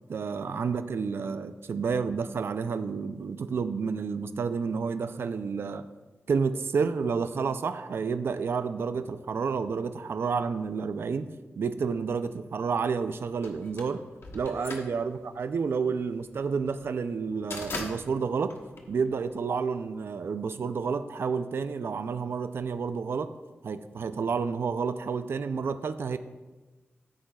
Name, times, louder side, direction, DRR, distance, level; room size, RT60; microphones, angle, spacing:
voice 1, 0.1-5.8 6.3-11.3 11.6-14.0 14.3-18.6 18.9-23.3 23.6-26.2, right 5 dB, 60° right, 11 dB, 0.4 m, -30 dB
sound 1, 13.4-19.6, left 3 dB, 60° left, 1.2 m, -41 dB
14.5 x 8.7 x 2.3 m, 1.2 s
wide cardioid pair, 160°, 5 cm